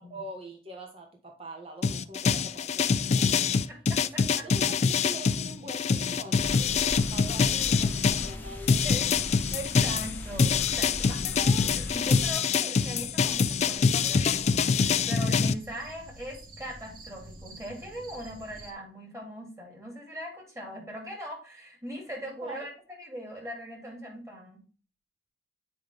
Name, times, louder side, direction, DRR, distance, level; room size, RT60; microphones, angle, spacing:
voice 1, 0.0-3.4 4.0-9.1 22.4-22.7, right 2 dB, 35° right, 2 dB, 1.2 m, -44 dB
sound 1, 1.8-8.3 8.7-15.5, left 5 dB, 40° left, 0.3 m, -25 dB
voice 2, 3.7-4.4 7.5-7.8 8.1-8.5 8.8-9.1 9.5-22.7 23.0-24.6, equal, 20° right, 0 dB, 3.0 m, -40 dB
sound 2, 6.4-12.3, left 1 dB, 10° left, 1.1 m, -39 dB
sound 3, 12.8-18.7, right 1 dB, 50° right, 1.3 m, -49 dB
7.8 x 5.2 x 3.5 m, 0.36 s
head